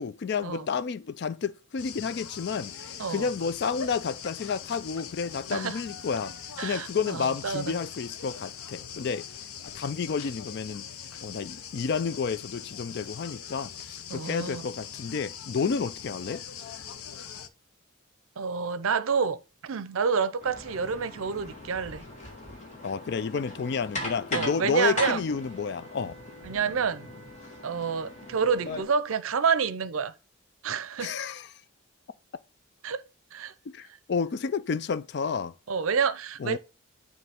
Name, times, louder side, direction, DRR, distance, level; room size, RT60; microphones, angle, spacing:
voice 1, 0.0-6.3 6.6-9.3 9.6-10.8 11.2-16.4 22.8-26.2 31.0-31.5 33.7-35.5 36.4-36.6, left 5 dB, 50° left, 0.3 m, -30 dB
sound 1, 1.8-17.5, left 8 dB, 90° left, 0.6 m, -42 dB
voice 2, 3.0-3.3 5.5-5.8 6.6-7.7 14.1-14.7 18.4-22.0 24.3-25.2 26.4-27.1 27.6-30.1 30.6-31.2 32.8-33.0 33.3-33.5 35.7-36.6, right 6 dB, 75° right, 0.5 m, -28 dB
sound 2, 20.4-28.8, left 1 dB, 35° left, 1.8 m, -39 dB
sound 3, 25.2-29.1, right 1 dB, 40° right, 1.2 m, -53 dB
9.2 x 3.1 x 3.5 m
head